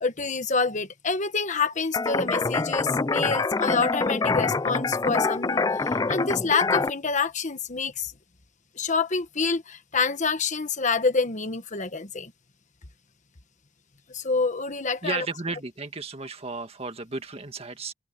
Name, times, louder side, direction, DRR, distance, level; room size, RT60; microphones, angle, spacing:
voice 1, 0.0-8.1 8.8-12.3 14.1-15.2, left 4 dB, 40° left, 1.3 m, -27 dB
sound 1, 1.9-6.9, left 3 dB, 20° left, 0.4 m, -25 dB
voice 2, 15.0-17.9, right 4 dB, 30° right, 1.8 m, -34 dB
open air
head